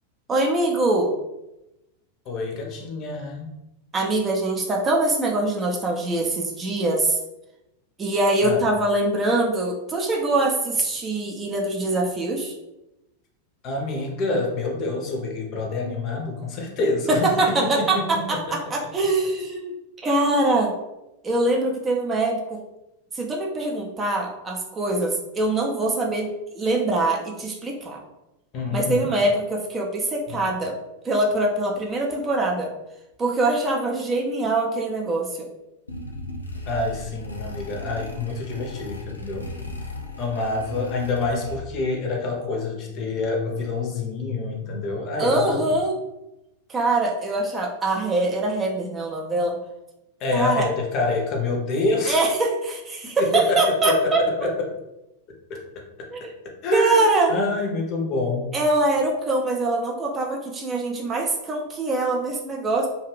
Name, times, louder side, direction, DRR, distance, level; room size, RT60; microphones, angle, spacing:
voice 1, 0.3-1.1 3.9-7.2 8.0-12.5 17.1-19.7 20.0-20.7 21.2-22.6 23.1-28.0 28.7-30.7 31.0-32.7 33.2-35.5 45.2-45.9 46.7-49.6 50.3-50.6 52.1-54.2 56.1-56.2 56.7-57.3 58.5-62.9, right 2 dB, 20° right, 0 dB, 0.5 m, -23 dB
voice 2, 2.3-3.5 8.4-8.7 13.6-18.4 28.5-29.1 36.7-39.5 40.2-45.6 50.2-52.2 53.2-54.1 54.4-54.7 55.5-55.6 56.6-58.5, left 3 dB, 35° left, 1 dB, 0.6 m, -27 dB
sound 1, 35.9-41.9, left 2 dB, 80° left, 0.4 m, -36 dB
2.4 x 2.3 x 3.2 m, 0.94 s
figure-of-eight pair, 90°, 0 cm